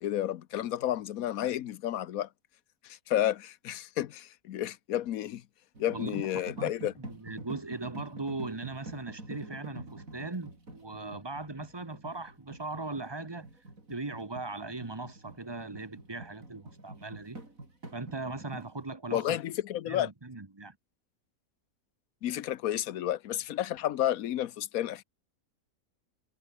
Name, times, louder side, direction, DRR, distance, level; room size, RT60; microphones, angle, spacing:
voice 1, 0.0-2.3 2.8-5.4 5.8-6.9 19.1-20.1 22.2-25.0, left 12 dB, 70° left, 1.2 m, -31 dB
sound 1, 5.8-18.8, right 2 dB, 60° right, 6.1 m, -46 dB
voice 2, 5.9-13.5 13.9-17.4 17.9-19.4 19.9-20.8, right 3 dB, 20° right, 1.2 m, -39 dB
omnidirectional pair, 1.6 m